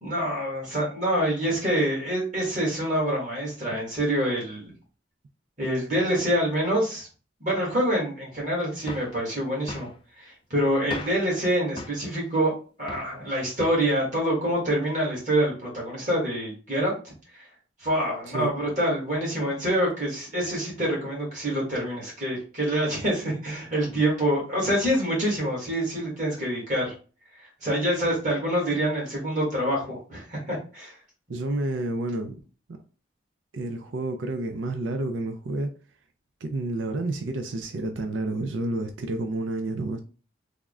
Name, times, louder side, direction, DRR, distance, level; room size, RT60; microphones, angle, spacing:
voice 1, 0.0-4.7 5.6-7.1 7.4-9.9 10.2-12.5 12.8-17.5 17.8-26.9 27.4-30.9, right 1 dB, 40° right, 1.5 m, -26 dB
sound 1, 8.9-9.2 9.7-10.0 10.9-11.3 11.8-12.0 12.9-13.2 13.6-13.9, left 2 dB, 25° left, 0.3 m, -37 dB
voice 2, 31.3-32.4 33.5-35.7 36.4-40.0, right 2 dB, 75° right, 0.4 m, -30 dB
3.5 x 2.1 x 3.5 m
head